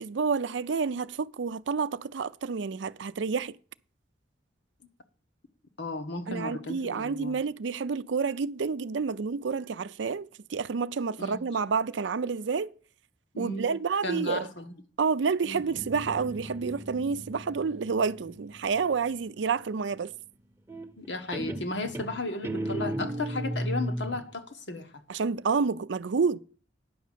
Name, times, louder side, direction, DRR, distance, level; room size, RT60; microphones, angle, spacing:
voice 1, 0.0-3.5 6.3-12.7 13.4-14.5 15.0-20.1 25.1-26.4, right 5 dB, 80° right, 0.5 m, -29 dB
voice 2, 5.8-7.4 11.2-11.6 13.3-14.8 15.4-15.6 21.0-24.9, left 2 dB, 70° left, 1.3 m, -35 dB
Guitar, 15.6-19.2 20.7-21.1 21.3-24.3, right 1 dB, 15° right, 0.8 m, -36 dB
10.0 x 6.2 x 7.4 m
head